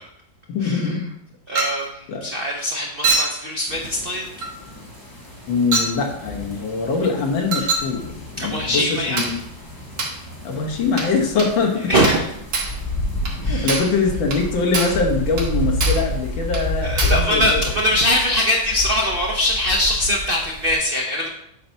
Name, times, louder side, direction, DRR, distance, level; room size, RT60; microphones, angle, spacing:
voice 1, 0.5-1.1 2.1-2.3 5.5-8.0 8.4-9.4 10.4-11.9 13.5-17.6, left 4 dB, 90° left, 0 dB, 1.9 m, -22 dB
voice 2, 1.5-4.3 8.4-9.2 11.9-12.2 13.4-13.7 16.8-21.3, left 1 dB, 80° right, 0 dB, 0.5 m, -22 dB
Chink clink, 1.6-1.9 3.0-3.4 4.4-4.6 5.7-6.0 7.5-7.9 9.2-9.4 10.0-10.2 11.0-11.1 11.4-11.6 12.0-12.3 12.5-12.8 13.3-13.4 13.7-14.0 14.3-14.4 14.7-15.0 15.4-15.5 15.8-16.1 16.5-16.7 17.0-17.3, right 3 dB, 55° right, 1.6 m, -24 dB
sound 1, 3.7-20.8, left 1 dB, 15° left, 1.1 m, -30 dB
7.5 x 2.7 x 5.5 m, 0.75 s
omnidirectional pair, 2.0 m